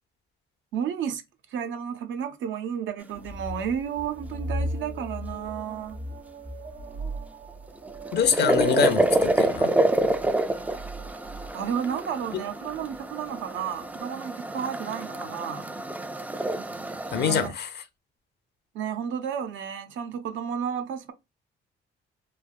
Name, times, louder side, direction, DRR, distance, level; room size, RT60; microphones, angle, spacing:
voice 1, 0.7-1.2 1.5-6.0 11.5-15.6 17.1-17.5 18.7-21.1, right 8 dB, 75° right, 0.6 m, -32 dB
sound 1, 3.1-13.0 13.3-14.0, right 1 dB, 50° right, 0.9 m, -36 dB
sound 2, 7.7-17.5, right 2 dB, 10° right, 0.3 m, -27 dB
voice 2, 8.1-9.7 17.1-17.7, left 7 dB, 55° left, 0.6 m, -25 dB
3.2 x 2.2 x 2.4 m
cardioid pair, 90°, 20 cm